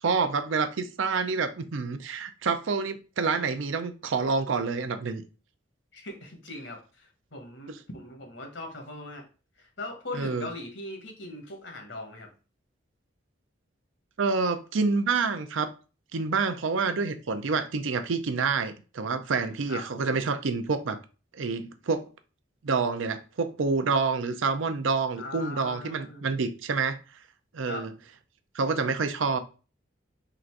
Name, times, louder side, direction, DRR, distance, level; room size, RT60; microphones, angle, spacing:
voice 1, 0.0-5.2 10.1-10.5 14.2-15.7 16.1-21.0 21.4-22.1 22.6-27.0 27.5-27.9 28.5-29.4, right 4 dB, 75° right, 0.5 m, -28 dB
voice 2, 5.9-9.2 9.6-12.3 19.7-20.0 25.1-26.2 27.7-27.9, left 2 dB, 65° left, 1.2 m, -40 dB
3.9 x 2.5 x 4.5 m
head